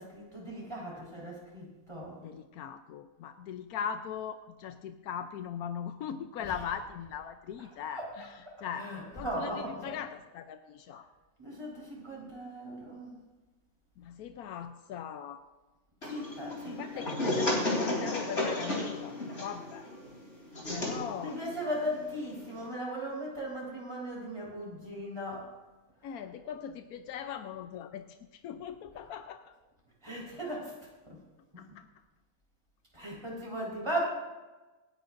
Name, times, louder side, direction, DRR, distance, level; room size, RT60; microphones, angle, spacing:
voice 1, 0.0-2.2 6.4-6.5 7.6-8.3 8.7-10.0 11.4-13.2 16.1-17.1 21.2-25.5 26.0-26.2 30.0-30.7 31.1-31.2 31.5-31.6 32.9-34.0, equal, 20° right, -4 dB, 4.5 m, -38 dB
voice 2, 2.2-11.1 14.0-15.4 16.6-19.9 20.7-21.4 26.0-29.5 31.6-31.8, left 8 dB, 90° left, 8 dB, 1.2 m, -40 dB
sound 1, 16.0-22.7, left 1 dB, 50° left, 3.7 m, -34 dB
26.5 x 9.9 x 2.6 m, 1.2 s
omnidirectional pair, 1.5 m